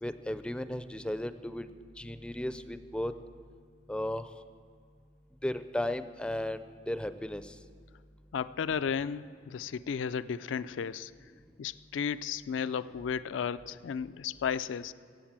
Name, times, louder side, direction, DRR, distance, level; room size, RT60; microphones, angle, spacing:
voice 1, 0.0-3.1 3.9-4.3 5.4-7.6, left 1 dB, 5° left, 11 dB, 0.4 m, -35 dB
voice 2, 8.3-11.1 11.6-14.9, left 7 dB, 80° left, 15 dB, 0.4 m, -34 dB
15.0 x 8.2 x 7.3 m, 2.2 s
head